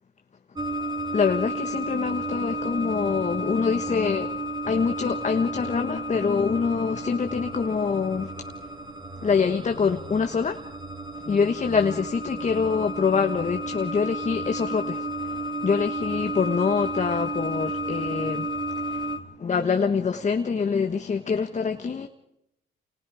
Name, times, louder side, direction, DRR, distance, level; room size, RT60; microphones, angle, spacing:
sound 1, 0.6-19.2, right 1 dB, 20° right, 2.9 m, -32 dB
voice 1, 1.1-8.3 9.2-10.6 11.3-18.5 18.8-19.1 19.4-22.1, left 5 dB, 35° left, 1.4 m, -25 dB
29.5 x 29.0 x 5.0 m
cardioid pair, 90°, 20 cm